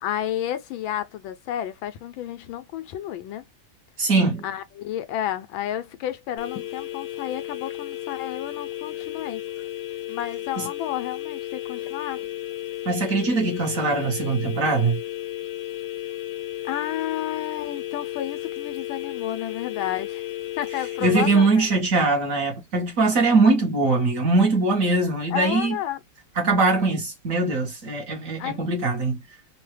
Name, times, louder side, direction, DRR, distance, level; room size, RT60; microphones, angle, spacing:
voice 1, 0.0-3.5 4.4-9.4 10.1-12.2 16.6-20.3 20.6-21.7 25.3-26.0 28.4-28.6, left 11 dB, 90° left, 1.4 m, -31 dB
voice 2, 4.0-4.4 10.6-10.7 12.8-15.0 21.0-25.7 26.4-29.2, right 3 dB, 55° right, 1.1 m, -21 dB
sound 1, 6.4-21.5, left 14 dB, 70° left, 1.1 m, -33 dB
3.6 x 2.1 x 3.1 m
omnidirectional pair, 2.2 m